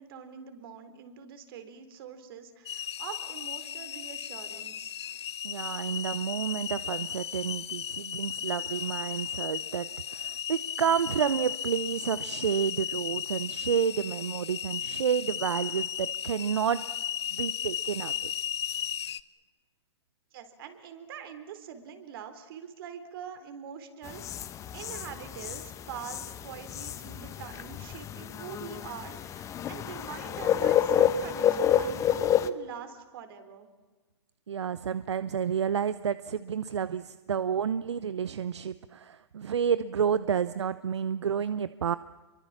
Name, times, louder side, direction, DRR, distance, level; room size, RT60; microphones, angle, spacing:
voice 1, 0.0-4.9 20.3-24.5 24.7-33.7, right 8 dB, 55° right, 9 dB, 3.9 m, -44 dB
sound 1, 2.7-19.2, left 9 dB, 70° left, 1.0 m, -35 dB
voice 2, 5.4-16.8 17.3-18.3 34.5-42.0, right 8 dB, 80° right, 15 dB, 0.8 m, -30 dB
sound 2, 24.1-32.5, left 9 dB, 20° left, 1.1 m, -29 dB
26.5 x 23.5 x 7.3 m, 1.3 s
hypercardioid pair, 125°, 14 cm